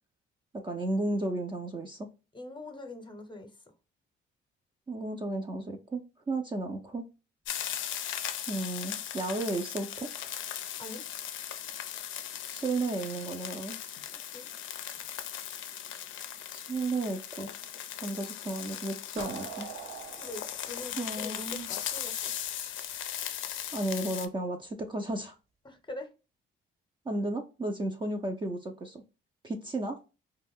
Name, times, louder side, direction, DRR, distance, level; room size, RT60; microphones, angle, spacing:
voice 1, 0.6-2.1 4.9-7.0 8.5-10.1 12.5-13.8 16.5-17.5 18.0-19.7 21.0-21.7 23.7-25.3 27.1-29.0 29.4-30.0, right 2 dB, 25° right, 3 dB, 0.4 m, -33 dB
voice 2, 2.3-3.5 10.8-11.0 14.3-14.5 20.2-22.4 25.6-26.1, left 2 dB, 25° left, 6 dB, 0.7 m, -43 dB
sound 1, 7.5-24.3, left 10 dB, 80° left, 0.4 m, -38 dB
sound 2, 19.2-22.0, right 7 dB, 80° right, 0.7 m, -43 dB
2.4 x 2.2 x 3.4 m, 0.30 s
cardioid pair, 90°, 20 cm